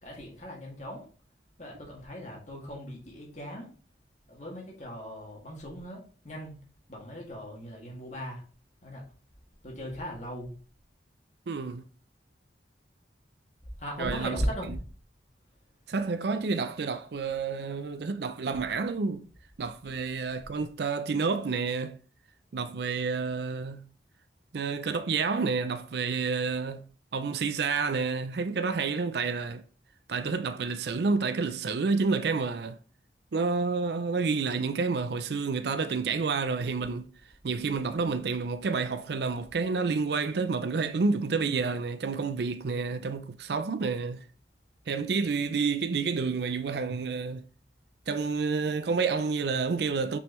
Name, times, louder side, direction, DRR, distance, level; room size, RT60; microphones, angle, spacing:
voice 1, 0.0-1.0 1.6-3.7 4.3-6.5 6.9-8.4 8.8-9.0 9.6-10.5 13.8-14.8, equal, 40° left, 2.2 m, -38 dB
voice 2, 11.5-11.8 14.0-14.4 15.9-19.3 19.6-22.0 22.5-23.9 24.5-26.8 27.1-29.6 30.1-32.8 33.3-37.1 37.4-44.2 44.9-47.4 48.1-50.2, right 4 dB, 65° right, 0.4 m, -29 dB
6.0 x 5.4 x 3.1 m
head